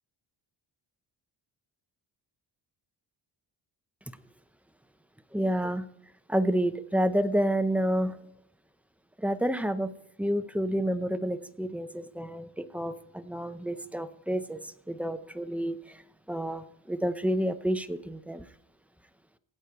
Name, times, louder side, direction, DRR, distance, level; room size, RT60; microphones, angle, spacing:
voice 1, 5.3-5.9 6.3-8.2 9.2-9.9 10.2-16.0 16.3-18.5, equal, 5° right, 11 dB, 0.6 m, -29 dB
16.5 x 8.3 x 4.5 m, 0.83 s
cardioid pair, 110°, 46 cm